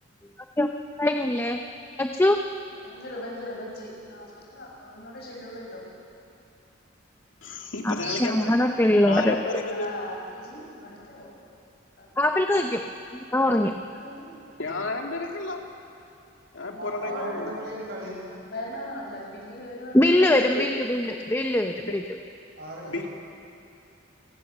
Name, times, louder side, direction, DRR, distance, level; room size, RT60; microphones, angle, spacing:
voice 1, 1.0-1.6 2.0-2.4 7.8-9.6 12.2-12.8 13.1-13.7 19.9-22.0, left 1 dB, 15° left, 4 dB, 0.8 m, -22 dB
voice 2, 2.7-5.8 8.6-8.9 9.6-11.3 12.0-12.3 13.6-14.3 16.6-17.4 18.4-20.1, left 1 dB, 60° left, -2 dB, 6.8 m, -40 dB
voice 3, 7.4-8.5 9.1-9.9 14.6-15.6 16.5-17.6 20.2-20.7 22.9-23.1, left 2 dB, 85° left, 2 dB, 2.5 m, -32 dB
voice 4, 16.7-18.3 22.6-23.1, right 1 dB, 60° right, -2 dB, 7.1 m, -36 dB
28.5 x 17.5 x 7.3 m, 2.6 s
head